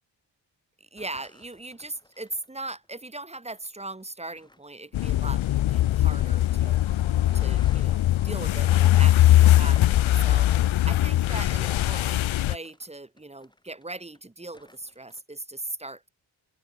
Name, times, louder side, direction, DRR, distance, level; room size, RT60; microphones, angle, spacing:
voice 1, 0.8-6.8 7.3-16.1, right 2 dB, 15° right, 2.1 m, -39 dB
sound 1, 1.0-3.0 3.6-5.4 5.9-14.2 14.5-15.2, left 1 dB, 10° left, 6.0 m, -54 dB
sound 2, 4.9-12.6, left 14 dB, 90° left, 0.7 m, -21 dB
sound 3, 6.3-11.1, left 9 dB, 70° left, 1.5 m, -46 dB
open air
wide cardioid pair, 85°, 46 cm